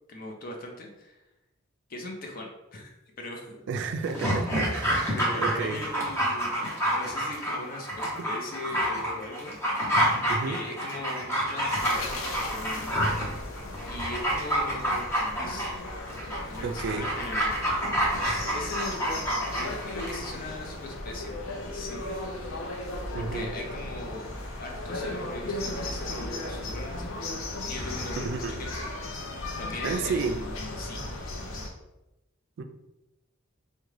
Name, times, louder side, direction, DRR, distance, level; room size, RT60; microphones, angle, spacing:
voice 1, 0.1-1.2 1.9-3.6 4.9-6.6 6.9-9.9 10.5-13.5 13.8-15.7 16.4-17.5 18.2-22.8 23.2-24.3 24.6-27.1 27.6-28.9 29.6-31.0, left 2 dB, 45° left, 1 dB, 0.6 m, -40 dB
voice 2, 3.7-5.8 8.2-8.3 10.3-10.6 16.6-17.1 23.1-23.5 28.2-28.6 29.8-30.4 32.6-32.7, right 4 dB, 60° right, 7 dB, 0.3 m, -32 dB
Dog, 4.0-20.3 20.6-20.7, equal, 15° left, 0.7 m, -28 dB
sound 1, 11.7-31.7, left 2 dB, 90° left, 0.6 m, -36 dB
3.6 x 2.2 x 3.2 m, 0.94 s
head